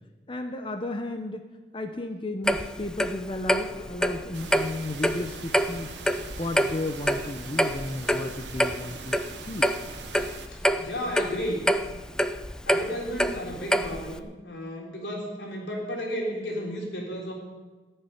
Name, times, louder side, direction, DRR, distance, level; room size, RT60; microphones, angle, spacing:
voice 1, 0.3-1.5 1.7-9.7, left 2 dB, 30° left, 6 dB, 0.9 m, -34 dB
Clock, 2.5-14.2, equal, 5° left, 0.5 m, -27 dB
sound 1, 4.3-10.5, right 5 dB, 85° right, 1.1 m, -42 dB
voice 2, 10.5-11.7 12.6-17.3, equal, 90° left, -1 dB, 3.7 m, -33 dB
15.0 x 6.9 x 9.8 m, 1.3 s
head